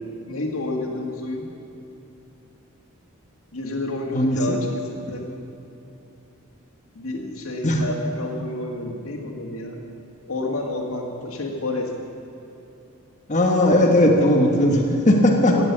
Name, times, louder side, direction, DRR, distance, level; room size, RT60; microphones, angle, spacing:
voice 1, 0.0-1.5 3.5-4.8 5.1-5.3 6.9-9.8 10.3-11.9 15.5-15.6, left 2 dB, 85° left, 1 dB, 2.1 m, -29 dB
voice 2, 4.1-4.6 7.6-7.8 13.3-15.5, left 1 dB, 35° left, 0 dB, 1.4 m, -18 dB
16.5 x 7.7 x 8.6 m, 2.9 s
head